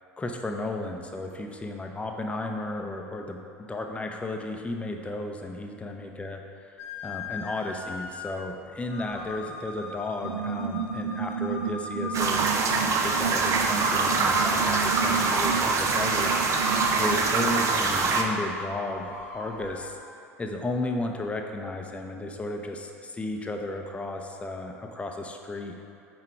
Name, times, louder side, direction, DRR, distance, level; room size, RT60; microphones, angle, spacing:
voice 1, 0.2-3.4 3.7-6.4 7.0-16.3 16.9-20.0 20.4-25.8, left 2 dB, 15° left, 3 dB, 0.7 m, -34 dB
sound 1, 6.8-19.9, left 3 dB, 80° left, 0.8 m, -40 dB
sound 2, 10.2-17.6, right 6 dB, 90° right, 0.4 m, -32 dB
sound 3, 12.1-18.2, right 4 dB, 40° right, 0.7 m, -24 dB
5.9 x 4.7 x 4.4 m, 2.6 s
hypercardioid pair, 75°, 8 cm